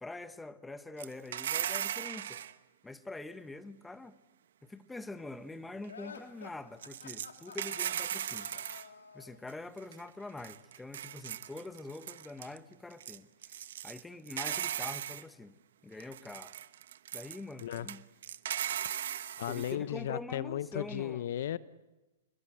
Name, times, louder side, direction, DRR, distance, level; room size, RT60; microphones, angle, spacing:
voice 1, 0.0-2.4 2.8-4.2 4.6-8.6 9.1-15.5 15.8-16.6 17.1-18.0 19.5-21.2, left 2 dB, 5° left, 1.3 m, -45 dB
sound 1, 1.0-2.5 6.8-8.8 9.5-9.6 9.8-10.1 10.4-12.6 12.9-14.0 14.3-15.2 16.0-19.7, right 10 dB, 70° right, 1.0 m, -38 dB
sound 2, 5.9-9.4, left 5 dB, 85° left, 3.0 m, -50 dB
voice 2, 18.8-21.6, left 11 dB, 65° left, 0.8 m, -36 dB
28.0 x 21.5 x 8.0 m
hypercardioid pair, 120°, 0 cm